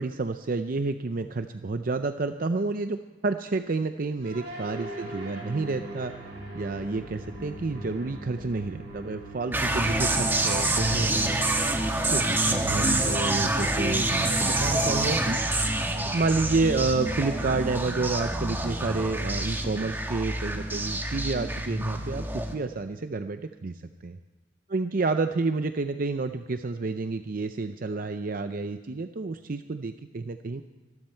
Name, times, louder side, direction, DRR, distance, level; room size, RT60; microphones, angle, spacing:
voice 1, 0.0-6.1 6.5-11.4 12.1-15.4 16.0-24.2 24.7-30.6, right 3 dB, 50° right, 9 dB, 0.6 m, -29 dB
sound 1, 4.2-22.5, right 2 dB, 70° right, 6.4 m, -42 dB
sound 2, 9.5-22.6, right 1 dB, 10° right, 1.5 m, -27 dB
23.5 x 13.5 x 4.5 m, 1.3 s
head